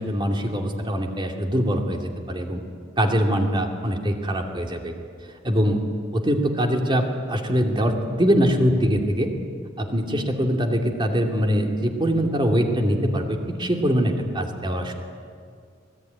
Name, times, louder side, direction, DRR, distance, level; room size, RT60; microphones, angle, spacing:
voice 1, 0.0-2.0 2.3-2.6 3.0-4.9 5.4-5.8 6.1-9.3 9.8-14.9, equal, 25° right, 3 dB, 2.7 m, -23 dB
25.5 x 19.0 x 9.6 m, 2.2 s
head